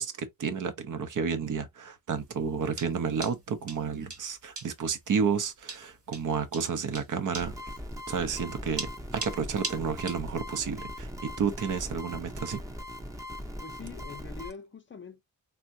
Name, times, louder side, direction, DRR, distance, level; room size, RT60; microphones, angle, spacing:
voice 1, 0.0-7.5 8.1-11.1 11.4-12.6, right 6 dB, 65° right, 0.6 m, -31 dB
sound 1, 2.2-10.3, right 3 dB, 45° right, 1.1 m, -40 dB
sound 2, 7.3-14.5, left 1 dB, 10° right, 0.6 m, -40 dB
voice 2, 13.6-15.2, left 5 dB, 35° left, 0.5 m, -44 dB
3.4 x 2.1 x 2.5 m
wide cardioid pair, 105°, 34 cm